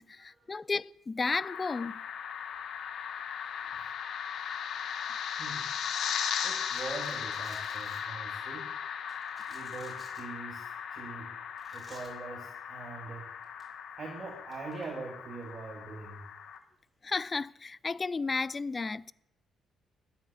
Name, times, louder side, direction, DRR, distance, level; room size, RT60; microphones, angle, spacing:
voice 1, 0.0-2.0 17.0-19.1, left 4 dB, 30° left, 0.3 m, -33 dB
sound 1, 1.3-16.6, left 8 dB, 70° left, 1.0 m, -38 dB
voice 2, 6.4-8.7 9.5-11.3 11.7-13.3 13.9-16.2, right 3 dB, 45° right, 2.5 m, -43 dB
Domestic sounds home sounds, 6.7-8.0 9.1-10.2 11.6-12.1 13.4-13.6 14.5-14.8, right 1 dB, 10° right, 4.7 m, -56 dB
10.0 x 9.3 x 6.9 m
cardioid pair, 90°, 0 cm